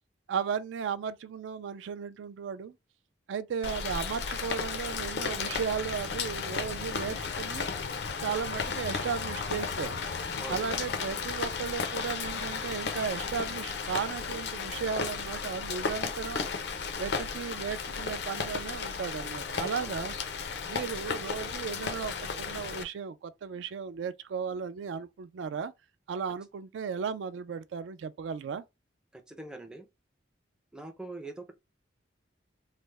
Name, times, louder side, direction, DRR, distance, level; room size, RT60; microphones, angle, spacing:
voice 1, 0.3-2.7 3.3-7.7 8.2-10.0 10.5-16.5 17.0-20.2 20.7-25.7 26.1-28.6, right 6 dB, 75° right, 0.3 m, -35 dB
Rain, 3.6-22.8, left 5 dB, 60° left, 0.4 m, -34 dB
voice 2, 10.4-10.7 19.8-19.9 29.1-29.9 30.7-31.5, right 2 dB, 5° right, 0.4 m, -43 dB
3.2 x 2.0 x 3.2 m
head